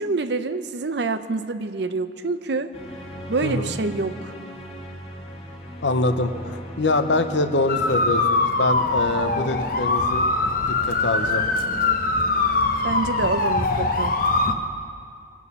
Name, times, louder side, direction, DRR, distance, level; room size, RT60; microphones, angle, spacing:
voice 1, 0.0-2.7 3.3-4.3 12.8-14.1, right 3 dB, 65° right, 11 dB, 0.7 m, -26 dB
sound 1, 2.7-14.3, equal, 30° left, 2.2 m, -39 dB
voice 2, 3.4-3.7 5.8-10.3 10.7-11.4, left 2 dB, 75° left, 9 dB, 0.9 m, -24 dB
sound 2, 7.7-14.5, left 2 dB, 50° left, 0.9 m, -22 dB
22.5 x 8.5 x 5.5 m, 2.4 s
head